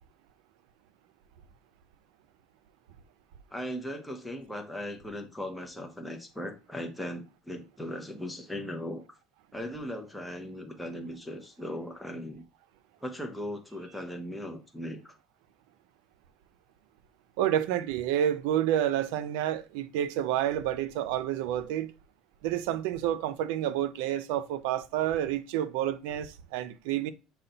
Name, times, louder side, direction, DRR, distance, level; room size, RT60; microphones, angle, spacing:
voice 1, 3.5-9.0 9.5-12.4 13.0-15.1, equal, 5° left, 0.6 m, -38 dB
voice 2, 17.4-21.9 22.4-27.1, right 11 dB, 85° right, 0.4 m, -29 dB
5.5 x 2.2 x 3.9 m
cardioid pair, 150°, 0 cm